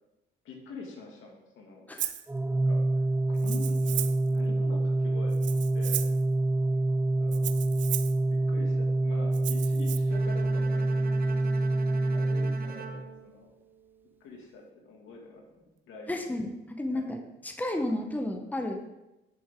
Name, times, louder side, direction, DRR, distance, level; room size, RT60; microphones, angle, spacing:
voice 1, 0.4-1.9 2.4-6.1 7.2-7.6 8.3-11.4 11.7-13.5 14.2-16.4 16.9-17.1, left 3 dB, 80° left, 0 dB, 2.3 m, -46 dB
Rattle (instrument), 2.0-2.2 3.4-4.3 5.3-6.2 7.3-8.2 9.3-10.0, right 12 dB, 70° right, 0.6 m, -35 dB
Organ, 2.3-13.2, right 2 dB, 10° right, 0.4 m, -27 dB
Bowed string instrument, 10.1-14.3, right 5 dB, 50° right, 1.0 m, -45 dB
voice 2, 16.1-16.5 16.8-18.8, left 1 dB, 10° left, 4 dB, 1.0 m, -32 dB
11.0 x 7.1 x 3.8 m, 0.98 s
cardioid pair, 90°, 20 cm